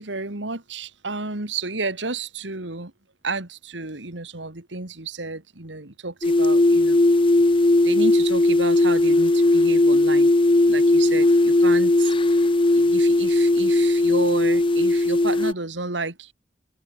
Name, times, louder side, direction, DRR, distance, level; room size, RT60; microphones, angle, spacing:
voice 1, 0.0-2.9 3.2-7.0 7.8-10.3 10.7-12.5 12.7-16.3, right 3 dB, 80° right, 2.6 m, -31 dB
sound 1, 6.2-15.5, left 2 dB, 30° left, 0.7 m, -18 dB
open air
head